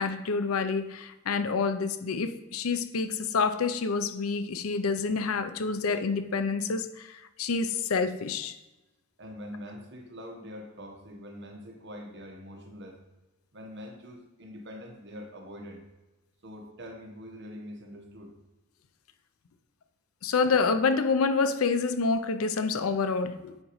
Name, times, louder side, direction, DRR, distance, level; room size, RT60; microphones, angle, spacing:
voice 1, 0.0-8.6 20.2-23.6, left 4 dB, 85° left, 0.5 m, -28 dB
voice 2, 9.2-13.0 13.5-15.8 16.4-18.3, equal, 55° right, 1.2 m, -44 dB
9.5 x 4.9 x 3.1 m
head